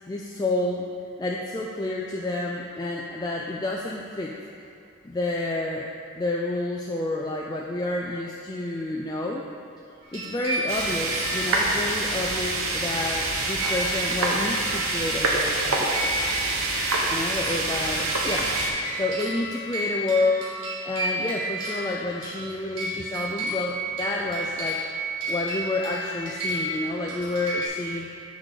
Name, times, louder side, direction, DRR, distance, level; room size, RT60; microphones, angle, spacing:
voice 1, 0.1-0.9 1.2-4.3 5.0-5.9 6.2-9.4 10.1-16.2 17.1-18.5 18.9-20.5 20.8-24.8 25.3-28.1, left 2 dB, 20° left, -2 dB, 0.3 m, -29 dB
sound 1, 10.0-12.0 13.3-27.7, right 1 dB, 70° right, 1.7 m, -33 dB
sound 2, 10.7-18.7, right 2 dB, 85° right, 1.0 m, -26 dB
6.1 x 4.9 x 6.4 m, 2.5 s
head